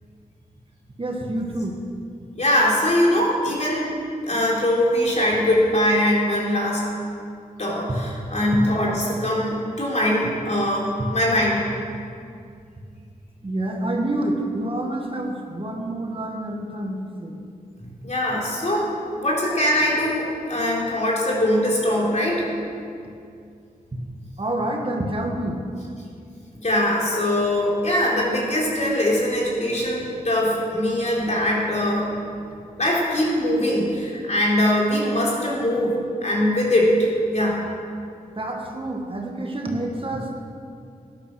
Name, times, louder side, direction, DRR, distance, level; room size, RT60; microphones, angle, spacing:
voice 1, 1.0-1.7 13.4-17.4 23.9-24.0 24.4-25.6 38.4-40.4, right 1 dB, 35° right, 1 dB, 1.9 m, -28 dB
voice 2, 2.4-4.0 4.2-6.9 7.6-11.7 18.0-22.5 26.5-32.2 32.8-37.6, left 1 dB, 50° left, -4 dB, 4.0 m, -22 dB
12.5 x 11.0 x 6.4 m, 2.4 s
cardioid pair, 60°, 15 cm